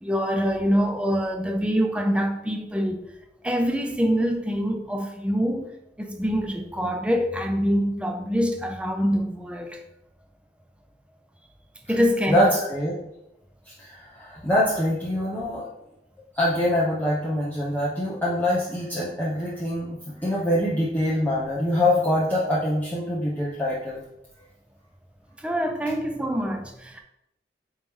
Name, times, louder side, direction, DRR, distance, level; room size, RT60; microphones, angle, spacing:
voice 1, 0.0-3.1 3.4-5.7 6.0-9.8 11.9-12.5 25.4-27.0, equal, 5° right, 0.4 m, -25 dB
voice 2, 12.3-13.0 13.6-15.7 16.3-24.0, left 1 dB, 10° left, 1.0 m, -24 dB
9.2 x 3.1 x 3.7 m
head